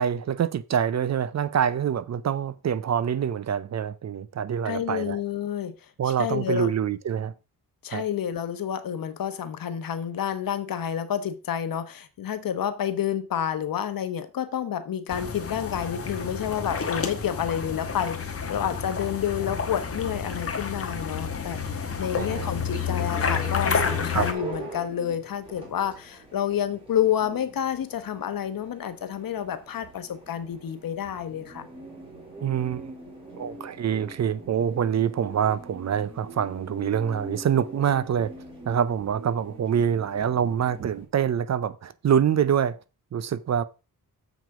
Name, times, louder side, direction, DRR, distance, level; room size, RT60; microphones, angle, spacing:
voice 1, 0.0-5.2 6.0-7.3 7.9-8.0 22.2-22.5 24.1-24.3 32.4-32.9 33.3-38.3 38.7-42.8 43.1-43.6, right 8 dB, 45° right, 0.6 m, -25 dB
voice 2, 4.6-5.7 6.0-6.7 7.8-31.7, left 9 dB, 65° left, 1.1 m, -29 dB
sound 1, 15.1-24.3, left 6 dB, 40° left, 1.4 m, -30 dB
sound 2, 22.5-41.1, right 2 dB, 15° right, 3.5 m, -43 dB
7.3 x 6.2 x 4.8 m
wide cardioid pair, 130°, 37 cm